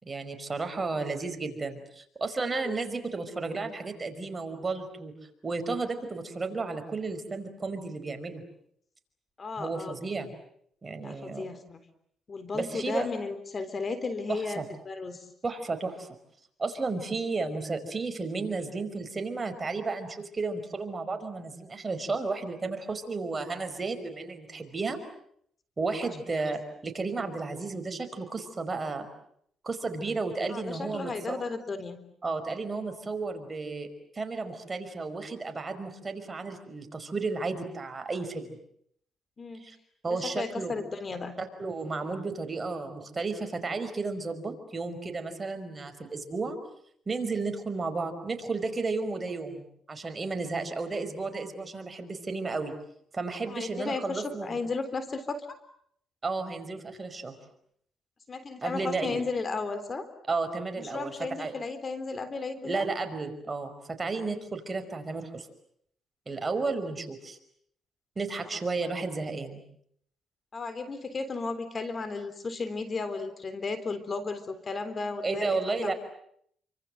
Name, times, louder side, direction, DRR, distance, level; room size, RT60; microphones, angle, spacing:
voice 1, 0.0-5.1 5.4-8.4 9.6-10.3 10.8-11.5 12.5-13.1 14.3-14.6 15.4-16.1 16.6-25.0 25.8-29.1 29.6-31.1 32.2-33.9 34.1-38.5 39.6-39.8 40.0-40.7 41.4-46.6 47.1-52.7 53.1-54.5 56.2-57.4 58.6-59.2 60.3-61.1 61.4-61.5 62.6-65.5 66.3-67.4 68.2-69.6 75.2-75.9, right 3 dB, 30° right, 7 dB, 5.2 m, -33 dB
voice 2, 2.4-2.8 9.4-10.0 11.0-11.8 12.3-15.3 26.0-26.1 30.5-32.0 39.4-39.6 40.1-41.3 53.5-55.5 58.3-60.1 60.8-62.9 68.4-68.6 70.5-75.9, left 4 dB, 35° left, 11 dB, 3.7 m, -34 dB
29.0 x 25.5 x 7.8 m, 0.68 s
cardioid pair, 90°, 0 cm